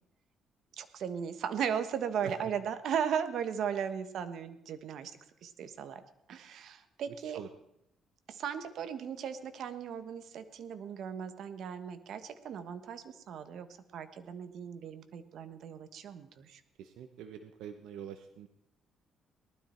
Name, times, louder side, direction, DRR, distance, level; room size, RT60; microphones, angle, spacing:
voice 1, 0.8-6.0 6.3-7.4 8.3-16.6, right 8 dB, 65° right, 10 dB, 1.3 m, -37 dB
voice 2, 16.8-18.5, right 9 dB, 85° right, 8 dB, 0.9 m, -44 dB
19.0 x 12.5 x 4.4 m, 0.78 s
cardioid pair, 115°, 0 cm